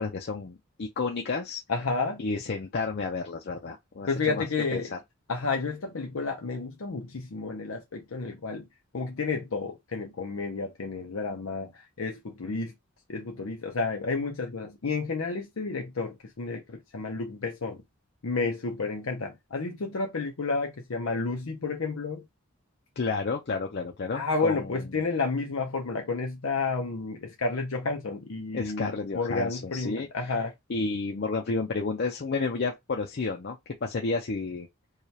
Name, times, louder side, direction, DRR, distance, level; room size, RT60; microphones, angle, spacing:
voice 1, 0.0-1.6 2.2-4.4 4.7-5.0 23.0-25.0 28.5-30.3 30.7-34.7, left 4 dB, 55° left, 0.6 m, -31 dB
voice 2, 1.7-2.2 4.1-4.9 5.3-8.6 8.9-11.7 12.0-12.7 13.1-17.8 18.2-22.2 24.1-30.5, left 4 dB, 90° left, 0.7 m, -31 dB
4.8 x 2.3 x 2.8 m
head